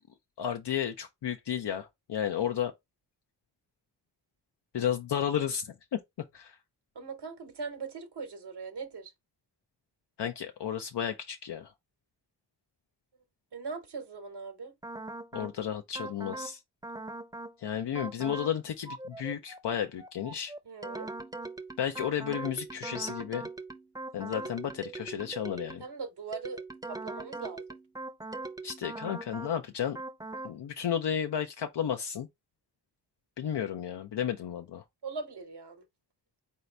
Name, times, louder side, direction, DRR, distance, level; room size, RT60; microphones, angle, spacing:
voice 1, 0.4-2.7 4.7-5.7 6.3-6.6 10.2-11.7 15.3-16.6 17.6-20.5 21.8-23.5 24.1-25.8 28.6-30.0 30.4-32.3 33.4-34.8, left 9 dB, 75° left, 0.6 m, -33 dB
voice 2, 6.9-9.1 13.5-14.7 20.6-21.1 25.8-27.6 35.0-35.8, right 4 dB, 75° right, 1.0 m, -40 dB
sound 1, 14.8-15.5 15.9-16.5 16.8-17.5 17.9-18.5 18.9-25.9 26.3-29.5 29.9-30.5, right 2 dB, 10° right, 0.6 m, -41 dB
4.0 x 2.8 x 3.3 m
cardioid pair, 55°, 41 cm